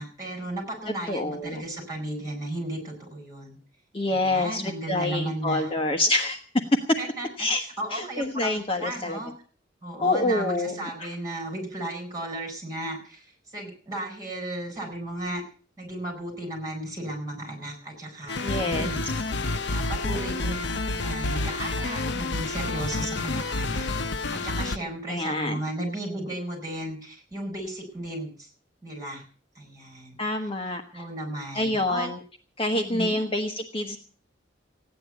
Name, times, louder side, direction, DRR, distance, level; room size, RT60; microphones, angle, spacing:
voice 1, 0.0-3.6 4.1-5.7 7.0-7.3 7.6-9.3 9.8-13.3 13.5-15.4 15.8-19.1 19.7-20.6 20.9-23.9 24.3-28.5 28.8-29.2 29.6-30.2 30.9-32.1 32.7-33.2, right 1 dB, 20° right, 2 dB, 7.3 m, -34 dB
voice 2, 1.1-1.6 3.9-6.4 7.4-7.6 7.9-9.2 10.0-11.1 18.4-18.9 20.5-20.7 25.1-25.6 30.2-31.0 31.5-32.2 32.6-34.0, left 2 dB, 25° left, 4 dB, 1.3 m, -27 dB
sound 1, 18.3-24.8, left 2 dB, 60° left, 0.8 m, -29 dB
16.0 x 10.0 x 8.3 m, 0.42 s
head